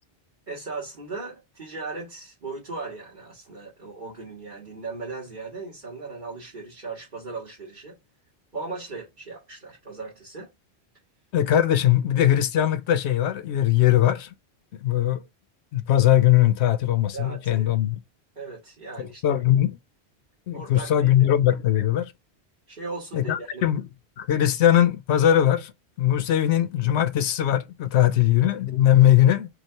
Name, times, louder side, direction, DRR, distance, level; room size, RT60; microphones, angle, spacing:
voice 1, 0.5-8.0 8.5-10.5 17.1-17.8 18.4-19.4 20.5-21.3 22.7-23.7, right 3 dB, 45° right, 1.8 m, -37 dB
voice 2, 11.3-14.3 14.8-15.2 15.7-18.0 19.0-19.8 20.5-22.1 23.1-23.8 24.2-25.7 26.0-29.5, left 12 dB, 85° left, 0.9 m, -20 dB
4.8 x 2.4 x 4.4 m
omnidirectional pair, 1.1 m